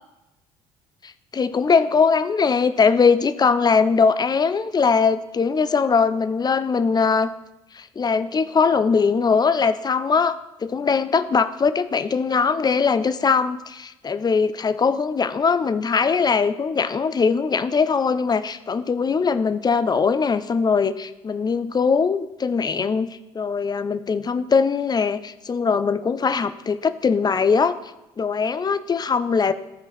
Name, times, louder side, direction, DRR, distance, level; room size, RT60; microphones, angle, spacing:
voice 1, 1.0-7.3 7.7-23.1 23.3-27.8 28.2-29.5, left 5 dB, 30° left, 12 dB, 0.6 m, -21 dB
13.0 x 4.8 x 4.2 m, 0.96 s
hypercardioid pair, 55°, 15 cm